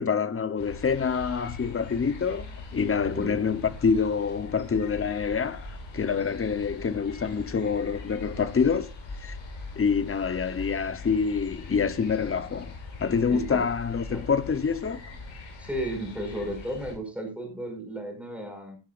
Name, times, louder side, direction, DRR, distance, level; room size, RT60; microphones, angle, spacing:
voice 1, 0.0-8.9 9.2-9.4 9.8-15.0, left 6 dB, 25° left, 0.8 m, -26 dB
sound 1, 0.6-16.9, left 3 dB, 65° left, 5.4 m, -41 dB
voice 2, 13.3-13.6 14.1-14.2 15.6-18.8, right 1 dB, 5° right, 5.3 m, -34 dB
17.5 x 11.0 x 2.4 m
wide cardioid pair, 175°, 49 cm